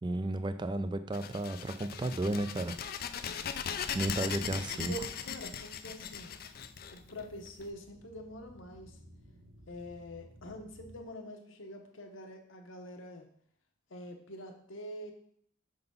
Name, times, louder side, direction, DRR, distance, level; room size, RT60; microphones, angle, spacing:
voice 1, 0.0-2.8 3.1-3.3 3.9-4.9, right 2 dB, 20° right, 10 dB, 0.3 m, -33 dB
sound 1, 1.1-7.6, left 8 dB, 50° left, 0.4 m, -39 dB
voice 2, 3.2-3.7 4.1-4.5 4.8-6.3 6.9-9.0 9.7-13.3 13.9-15.1, equal, 70° left, 4 dB, 1.0 m, -45 dB
sound 2, 6.0-11.1, equal, 90° right, 1.5 m, -57 dB
5.6 x 3.9 x 5.3 m, 0.65 s
head